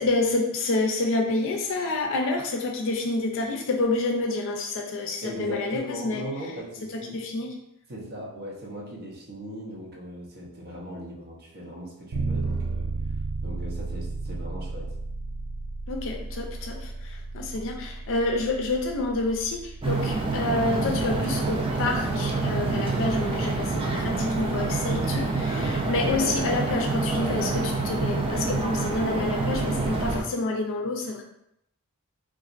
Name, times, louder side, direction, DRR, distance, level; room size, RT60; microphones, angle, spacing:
voice 1, 0.0-6.2 6.9-7.5 15.9-31.2, left 2 dB, 60° left, 2 dB, 0.4 m, -28 dB
voice 2, 5.2-7.2 7.9-12.9 13.4-14.9 17.5-17.7 25.5-25.8, equal, 50° right, -3 dB, 0.8 m, -38 dB
Bass guitar, 12.1-22.0, right 3 dB, 80° right, 0.5 m, -34 dB
sound 1, 19.8-30.2, right 3 dB, 25° right, 0.4 m, -27 dB
4.0 x 2.4 x 2.5 m, 0.78 s
head